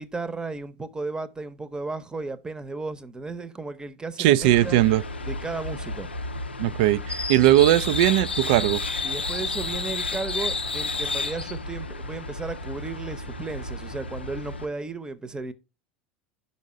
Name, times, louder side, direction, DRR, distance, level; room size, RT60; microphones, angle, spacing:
voice 1, 0.0-4.8 5.3-6.1 9.0-15.5, right 3 dB, 15° right, 0.8 m, -34 dB
voice 2, 4.2-5.0 6.6-8.8, right 14 dB, 60° right, 0.3 m, -19 dB
sound 1, 4.4-14.7, left 2 dB, 90° left, 0.5 m, -31 dB
5.5 x 5.4 x 4.9 m
figure-of-eight pair, 80°, 6 cm